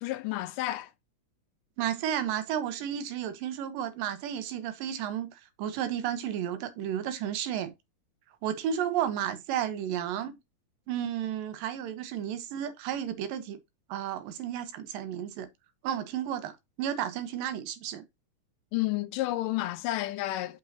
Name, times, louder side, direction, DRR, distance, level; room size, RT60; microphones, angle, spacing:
voice 1, 0.0-0.9 18.7-20.6, left 16 dB, 85° left, 2.2 m, -31 dB
voice 2, 1.8-7.7 8.4-10.4 10.9-13.6 13.9-15.5 15.8-18.0, right 10 dB, 85° right, 2.7 m, -32 dB
6.2 x 6.2 x 2.7 m
omnidirectional pair, 3.9 m